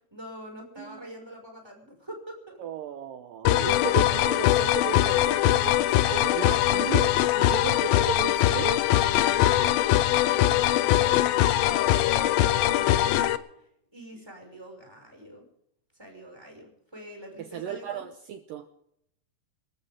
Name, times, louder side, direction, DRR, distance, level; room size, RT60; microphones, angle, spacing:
voice 1, 0.1-2.6 9.1-10.0 10.3-15.4 16.0-18.1, equal, 5° right, 1 dB, 5.7 m, -44 dB
voice 2, 0.8-1.1 2.6-8.8 17.4-18.7, right 9 dB, 90° right, 8 dB, 1.9 m, -35 dB
sound 1, 3.5-13.4, left 14 dB, 85° left, 2.0 m, -22 dB
27.0 x 13.0 x 3.7 m, 0.76 s
omnidirectional pair, 5.1 m